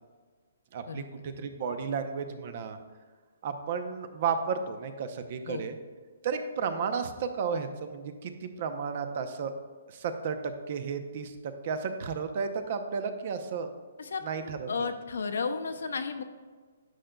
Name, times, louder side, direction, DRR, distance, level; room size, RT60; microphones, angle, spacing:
voice 1, 0.7-2.8 3.4-5.8 6.2-9.5 9.9-11.3 11.6-13.7 14.2-14.9, right 6 dB, 50° right, 8 dB, 0.7 m, -33 dB
voice 2, 14.0-16.2, left 5 dB, 75° left, 7 dB, 0.6 m, -33 dB
9.9 x 6.6 x 2.3 m, 1.5 s
hypercardioid pair, 145°, 0 cm